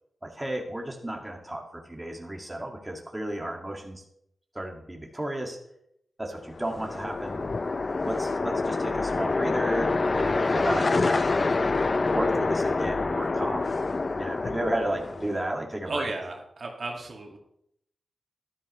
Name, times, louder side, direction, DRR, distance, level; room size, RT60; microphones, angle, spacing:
voice 1, 0.2-4.0 4.5-5.6 6.2-7.4 8.0-11.2 12.1-13.7 14.1-16.1, right 1 dB, 15° right, 1 dB, 2.1 m, -33 dB
sound 1, 6.5-15.5, left 3 dB, 45° left, 0.5 m, -27 dB
voice 2, 15.9-17.4, right 2 dB, 60° right, 1 dB, 2.1 m, -34 dB
12.5 x 11.5 x 3.2 m, 0.74 s
wide cardioid pair, 75°, 0 cm